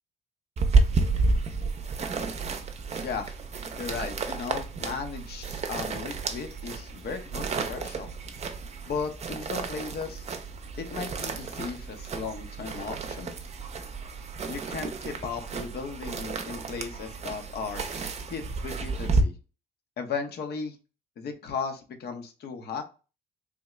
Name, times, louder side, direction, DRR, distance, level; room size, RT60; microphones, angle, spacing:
sound 1, 0.6-19.2, right 3 dB, 40° right, 0.6 m, -31 dB
voice 1, 3.0-3.4 3.8-8.1 8.9-10.3 10.8-13.3 14.5-17.9 18.3-19.4 20.0-20.8 21.2-22.8, left 5 dB, 65° left, 5 dB, 0.9 m, -36 dB
3.5 x 2.3 x 3.1 m, 0.33 s
cardioid pair, 85°, 18 cm